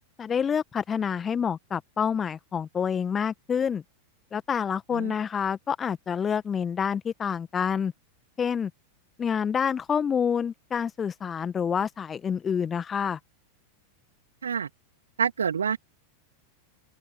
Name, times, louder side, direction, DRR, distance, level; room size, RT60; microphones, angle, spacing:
voice 1, 0.2-3.8 4.3-7.9 8.4-8.7 9.2-13.2, left 7 dB, 20° left, 1.9 m, -27 dB
voice 2, 15.2-15.8, right 7 dB, 70° right, 2.8 m, -27 dB
open air
figure-of-eight pair, 90°, 0 cm